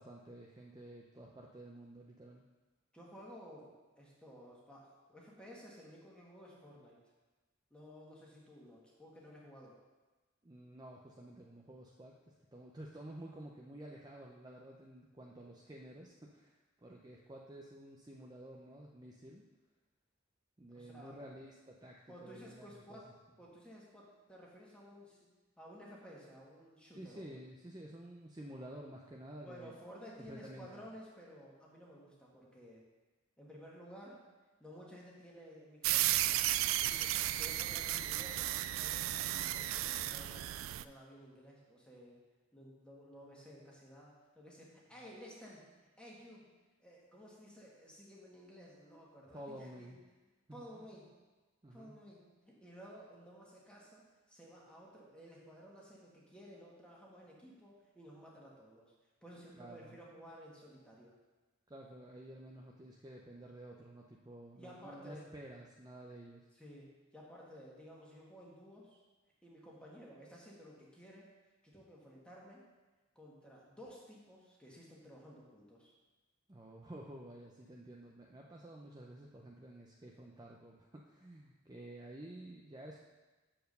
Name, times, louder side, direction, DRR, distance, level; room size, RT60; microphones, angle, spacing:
voice 1, 0.0-2.4 10.4-19.4 20.6-23.0 27.0-29.8 30.2-30.8 49.3-50.0 50.5-50.9 51.6-52.0 59.6-60.0 61.7-66.5 76.5-83.0, right 1 dB, 20° right, -2 dB, 0.6 m, -51 dB
voice 2, 2.9-7.0 7.7-9.8 20.7-21.2 22.1-23.1 23.4-25.2 25.6-27.3 29.4-32.8 33.4-34.3 34.6-36.3 36.8-42.2 42.5-45.6 46.0-46.4 46.8-49.9 50.5-51.1 51.7-58.9 59.2-61.1 64.5-65.3 66.5-69.0 69.4-71.3 71.6-72.7 73.1-75.9, equal, 5° left, -4 dB, 1.7 m, -54 dB
sound 1, 35.8-40.8, right 14 dB, 80° right, 0.3 m, -34 dB
7.5 x 4.6 x 6.6 m, 1.2 s
head